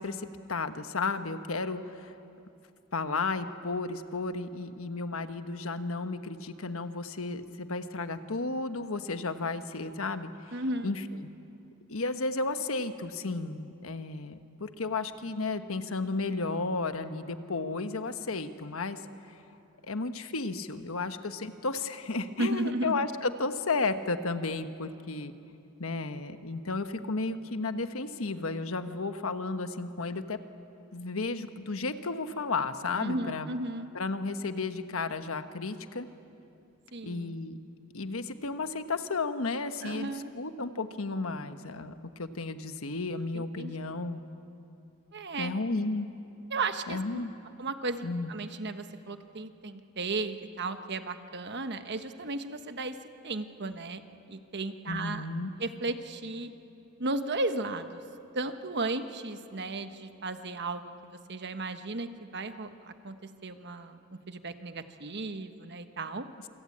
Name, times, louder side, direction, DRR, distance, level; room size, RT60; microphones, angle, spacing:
voice 1, 0.0-2.1 2.9-10.3 10.8-11.0 11.9-19.0 19.9-25.3 25.8-30.4 30.9-33.5 33.9-36.1 37.0-37.6 37.9-44.2 45.4-46.1 46.9-47.3 48.0-48.3 54.9-55.5, left 3 dB, 70° left, 9 dB, 1.2 m, -33 dB
voice 2, 10.5-10.9 22.4-23.0 33.0-33.9 36.9-37.4 39.8-40.3 43.3-43.8 45.1-45.5 46.5-47.0 47.6-52.9 53.2-54.0 54.3-55.3 55.6-56.5 57.0-58.0 58.3-66.3, right 2 dB, 55° right, 8 dB, 1.3 m, -35 dB
27.5 x 25.0 x 8.7 m, 2.7 s
head